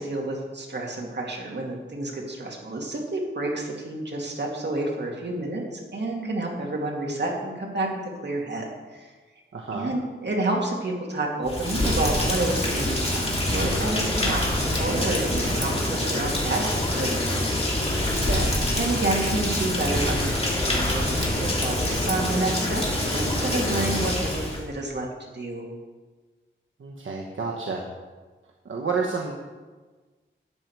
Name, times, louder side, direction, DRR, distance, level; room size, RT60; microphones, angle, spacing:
voice 1, 0.0-7.9 8.2-9.1 9.7-17.3 18.7-25.1 25.3-25.6, right 2 dB, 55° right, -1 dB, 2.3 m, -29 dB
voice 2, 9.5-9.9 18.2-18.6 26.8-27.8 28.6-29.3, right 4 dB, 75° right, 0 dB, 1.1 m, -30 dB
Rain, 11.4-24.6, left 1 dB, 30° left, 2.6 m, -25 dB
12.5 x 9.0 x 4.6 m, 1.3 s
wide cardioid pair, 90°, 21 cm